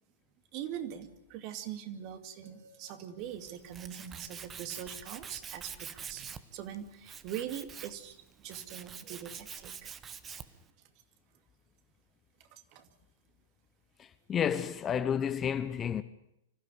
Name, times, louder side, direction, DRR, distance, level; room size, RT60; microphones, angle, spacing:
voice 1, 0.5-9.9 12.7-12.9, right 10 dB, 40° right, 2.4 m, -42 dB
sound 1, 2.4-6.5, equal, 85° right, 6.0 m, -65 dB
Tools, 3.2-10.7, right 7 dB, 20° right, 1.2 m, -46 dB
voice 2, 14.0-16.0, left 8 dB, 20° left, 0.9 m, -31 dB
25.0 x 15.5 x 9.6 m
figure-of-eight pair, 105°, 0 cm